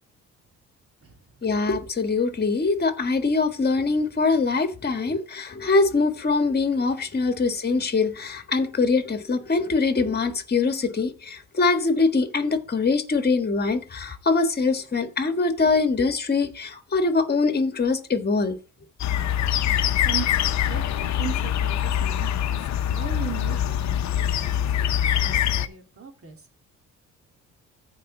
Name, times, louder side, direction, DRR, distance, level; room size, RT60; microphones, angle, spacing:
voice 1, 1.4-18.6, left 4 dB, 30° left, 1.6 m, -23 dB
sound 1, 19.0-25.7, left 10 dB, 65° left, 0.8 m, -24 dB
voice 2, 20.7-26.4, right 8 dB, 50° right, 3.1 m, -38 dB
15.0 x 5.1 x 3.9 m
cardioid pair, 90°, 30 cm